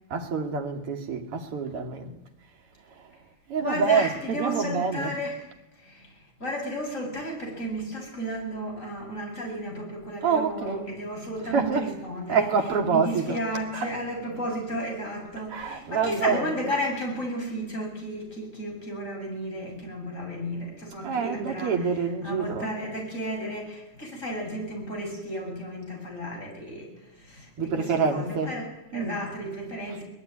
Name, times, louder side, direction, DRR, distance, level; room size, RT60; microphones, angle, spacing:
voice 1, 0.1-2.2 2.9-3.1 3.5-5.2 10.2-11.0 11.4-13.4 13.7-13.9 15.5-16.8 21.0-22.7 27.6-28.6 28.9-29.2 29.9-30.0, right 5 dB, 40° right, 2.7 m, -27 dB
voice 2, 3.6-5.4 5.8-12.5 12.9-21.7 22.2-30.0, equal, 15° left, 7.9 m, -33 dB
23.0 x 20.0 x 10.0 m
omnidirectional pair, 4.6 m